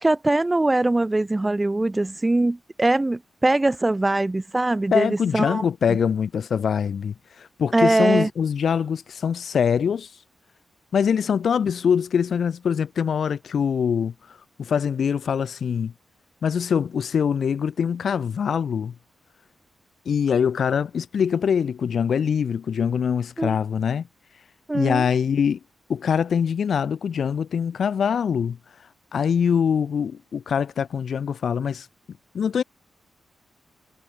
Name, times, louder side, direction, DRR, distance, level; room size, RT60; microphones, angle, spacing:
voice 1, 0.0-5.6 7.7-8.3 23.4-23.6 24.7-25.1, right 2 dB, 15° right, 0.8 m, -22 dB
voice 2, 4.9-10.1 10.9-14.1 14.6-15.9 16.4-18.9 20.1-24.1 24.7-25.6 25.9-28.6 29.1-31.9 32.3-32.6, left 7 dB, 70° left, 0.9 m, -23 dB
wide cardioid pair, 120°, 0 cm